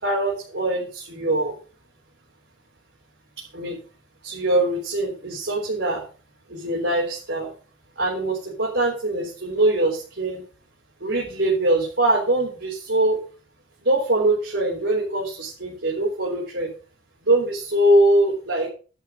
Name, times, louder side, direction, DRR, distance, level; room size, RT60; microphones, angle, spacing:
voice 1, 0.0-1.6 3.4-3.8 4.2-6.0 6.5-7.5 8.0-10.4 11.0-13.2 13.8-16.7 17.2-18.7, right 1 dB, 70° right, -4 dB, 4.0 m, -22 dB
11.5 x 6.1 x 6.5 m, 0.37 s
head